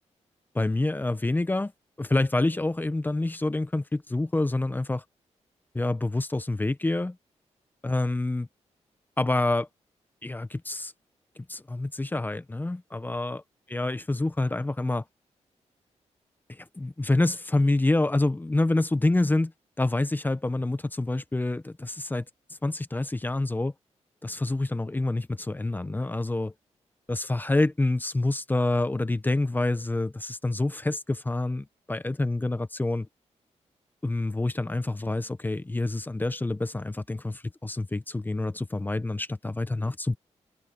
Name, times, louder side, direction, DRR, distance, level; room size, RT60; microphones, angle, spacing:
voice 1, 0.5-1.7 2.0-5.0 5.7-7.2 7.8-8.5 9.2-9.7 10.2-10.9 11.5-13.4 13.7-15.0 16.6-19.5 19.8-22.2 22.6-23.7 24.2-26.5 27.1-33.1 34.0-40.2, left 2 dB, 15° left, 0.8 m, -27 dB
wide cardioid pair, 110°, 12 cm